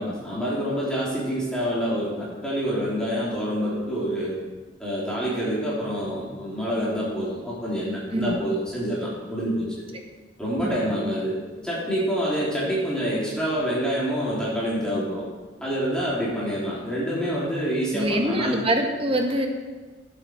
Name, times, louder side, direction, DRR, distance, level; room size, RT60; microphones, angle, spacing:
voice 1, 0.0-4.4 4.8-9.9 10.4-15.2 15.6-18.6, equal, 5° left, -8 dB, 3.4 m, -27 dB
voice 2, 8.1-8.5 10.6-10.8 17.9-19.5, right 1 dB, 35° right, 3 dB, 1.6 m, -24 dB
17.0 x 8.1 x 4.7 m, 1.3 s
head